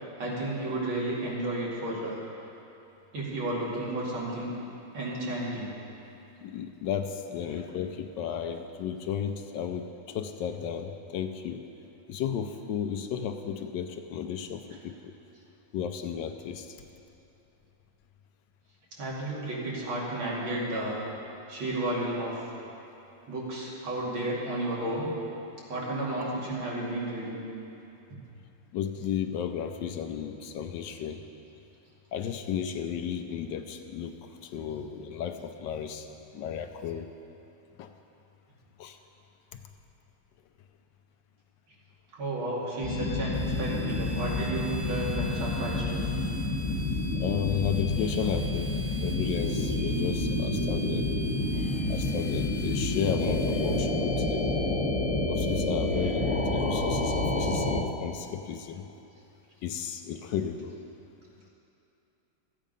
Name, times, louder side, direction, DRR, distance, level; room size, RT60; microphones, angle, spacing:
voice 1, 0.2-2.2 3.1-4.5 4.9-5.7 7.5-7.6 18.9-21.0 21.5-22.4 23.3-25.1 25.7-27.4 42.1-46.1 51.5-51.8 53.2-53.3 55.9-56.3, right 1 dB, 85° right, -6 dB, 3.0 m, -32 dB
voice 2, 6.4-11.6 12.1-15.2 15.7-16.8 28.7-31.2 32.1-34.1 34.4-36.1 36.3-37.1 37.8-37.9 38.8-39.0 39.5-39.6 47.1-51.1 51.9-54.5 55.3-58.8 59.6-60.8, left 8 dB, 75° left, 6 dB, 1.2 m, -34 dB
sound 1, 42.8-57.8, left 2 dB, 25° left, 0.9 m, -29 dB
sound 2, 43.3-54.0 54.3-54.4, right 7 dB, 55° right, 1.2 m, -41 dB
13.5 x 8.5 x 5.2 m, 2.8 s
omnidirectional pair, 2.2 m